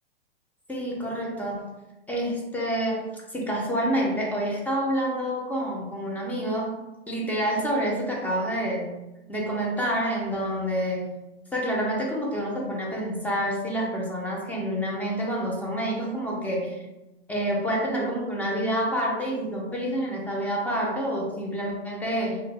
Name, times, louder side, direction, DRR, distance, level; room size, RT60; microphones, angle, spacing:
voice 1, 0.7-1.7 2.1-8.9 9.3-11.1 11.5-16.8 17.3-22.4, equal, 5° left, -3 dB, 0.5 m, -28 dB
2.5 x 2.1 x 3.2 m, 0.99 s
hypercardioid pair, 120°, 31 cm